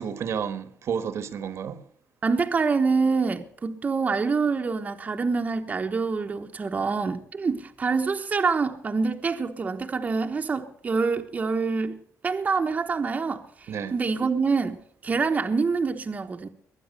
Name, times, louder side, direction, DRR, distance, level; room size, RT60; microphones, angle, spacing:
voice 1, 0.0-1.8 13.7-13.9, right 7 dB, 60° right, 1.3 m, -31 dB
voice 2, 2.2-12.0 12.2-16.5, right 4 dB, 30° right, 1.1 m, -26 dB
21.5 x 9.3 x 6.6 m
cardioid pair, 145°, 5 cm